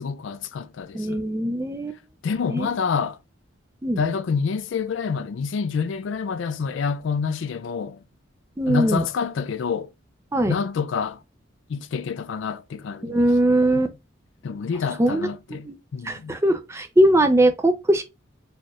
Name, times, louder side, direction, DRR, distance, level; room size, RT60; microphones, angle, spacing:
voice 1, 0.0-1.2 2.2-3.2 4.0-8.0 8.7-9.9 10.5-11.2 11.7-13.2 14.4-16.4, left 5 dB, 70° left, 0.4 m, -27 dB
voice 2, 0.9-2.0 2.5-2.8 3.8-4.0 8.6-9.0 10.3-10.5 13.0-13.9 15.0-15.3 15.6-15.8 16.0-18.0, right 1 dB, 15° right, 0.4 m, -20 dB
4.2 x 3.1 x 2.4 m
head